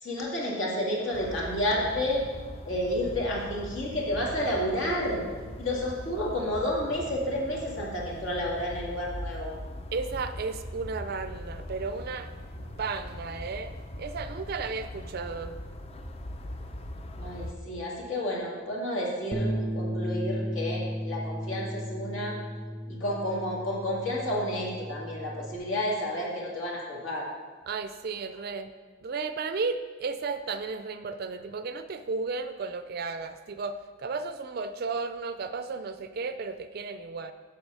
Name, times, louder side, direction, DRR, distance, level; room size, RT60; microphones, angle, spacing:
voice 1, 0.0-2.2 2.6-5.2 5.6-9.6 17.2-22.4 22.9-27.3, left 1 dB, 70° left, -3 dB, 2.2 m, -30 dB
sound 1, 1.1-17.5, left 1 dB, 30° left, 0.5 m, -41 dB
voice 2, 9.9-12.3 12.6-15.5 27.7-28.7 29.0-37.3, right 4 dB, 50° right, 10 dB, 0.4 m, -34 dB
Bass guitar, 19.3-25.6, equal, ahead, 0.7 m, -34 dB
7.9 x 6.6 x 5.5 m, 1.4 s
head